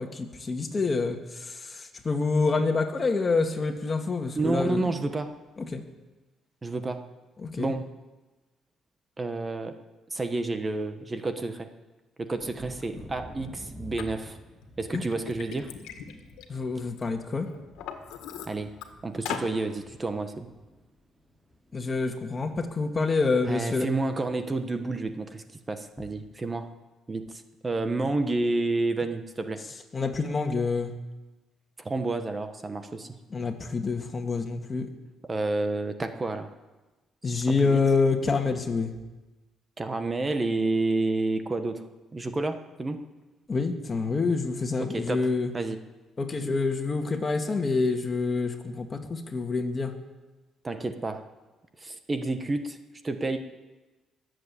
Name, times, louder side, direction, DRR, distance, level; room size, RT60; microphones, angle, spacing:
voice 1, 0.0-5.0 5.6-5.8 7.4-7.7 14.9-15.0 16.5-17.5 21.7-23.9 29.9-30.9 33.3-34.9 37.2-38.9 43.5-45.5 46.2-49.9, left 4 dB, 30° left, 5 dB, 2.0 m, -27 dB
voice 2, 4.4-5.3 6.6-7.0 7.6-7.9 9.2-9.8 10.1-11.7 12.2-14.4 14.8-15.7 18.5-18.7 19.0-20.5 23.4-26.7 27.1-29.6 31.8-33.1 35.3-36.5 37.2-37.8 39.8-41.8 42.1-43.0 44.8-45.8 46.4-46.5 50.6-51.3 51.8-52.8 53.0-53.4, right 2 dB, 25° right, 8 dB, 1.3 m, -30 dB
Thunder, 12.4-21.8 22.1-22.8 23.2-23.3 23.7-23.9, left 1 dB, ahead, 6.3 m, -49 dB
Liquid, 14.0-14.1 14.6-17.0 17.5-18.9 19.3-19.5, left 8 dB, 85° left, 1.8 m, -38 dB
21.0 x 8.0 x 8.4 m, 1.2 s
cardioid pair, 85°, 0 cm